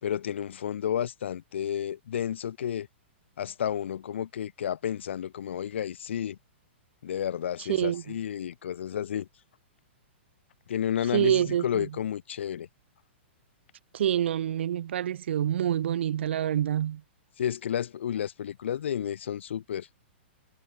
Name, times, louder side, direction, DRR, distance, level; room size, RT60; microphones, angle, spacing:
voice 1, 0.0-2.9 3.4-6.4 7.0-9.3 10.7-12.7 17.4-19.9, left 9 dB, 70° left, 5.5 m, -31 dB
voice 2, 7.6-8.0 11.1-12.0 13.9-17.0, right 10 dB, 65° right, 3.7 m, -27 dB
hypercardioid pair, 150°, 7 cm